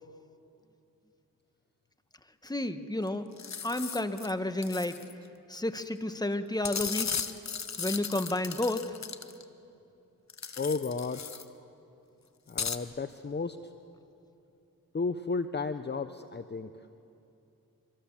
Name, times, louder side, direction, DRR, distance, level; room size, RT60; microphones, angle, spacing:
voice 1, 2.4-3.3 3.6-5.0 5.5-7.2 7.8-8.8, left 1 dB, 10° left, 9 dB, 1.3 m, -31 dB
sound 1, 3.1-3.2 3.4-4.3 4.6-5.1 6.6-9.4 10.3-11.4 12.5-12.8, left 6 dB, 50° left, 1.2 m, -36 dB
voice 2, 10.6-11.3 12.5-13.6 14.9-16.7, left 4 dB, 30° left, 10 dB, 0.8 m, -33 dB
25.0 x 24.0 x 7.3 m, 2.7 s
cardioid pair, 55°, 34 cm